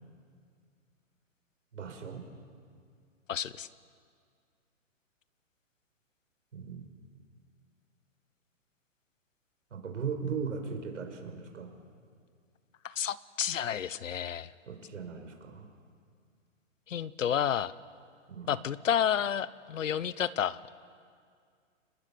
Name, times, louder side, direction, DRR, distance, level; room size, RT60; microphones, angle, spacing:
voice 1, 1.7-2.2 6.5-6.9 9.7-11.7 14.7-15.7 18.3-18.5, right 6 dB, 70° right, 5 dB, 5.4 m, -38 dB
voice 2, 3.3-3.7 12.8-14.5 16.9-17.7 18.5-20.7, left 9 dB, 70° left, 18 dB, 1.1 m, -30 dB
29.0 x 20.5 x 8.5 m, 2.1 s
hypercardioid pair, 180°, 39 cm